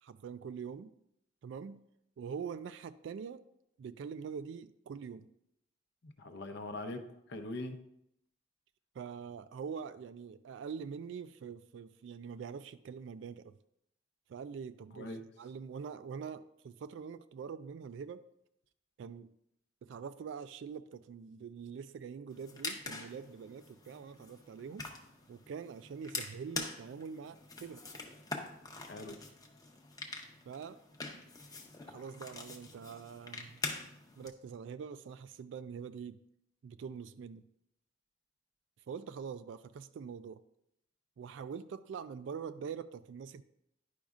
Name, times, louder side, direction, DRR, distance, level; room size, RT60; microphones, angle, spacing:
voice 1, 0.0-0.9 1.4-1.8 2.2-3.5 3.8-5.3 8.9-13.6 14.3-18.2 19.0-19.3 19.8-24.9 25.3-27.8 30.5-30.8 31.8-33.6 34.2-36.2 36.6-37.5 38.9-40.4 41.2-43.4, right 6 dB, 70° right, 12 dB, 0.3 m, -44 dB
voice 2, 6.0-7.8 14.9-15.2 28.9-29.2, left 2 dB, 60° left, 7 dB, 0.7 m, -42 dB
sound 1, 22.3-34.3, left 3 dB, 20° left, 0.7 m, -44 dB
10.0 x 5.1 x 2.4 m, 0.78 s
head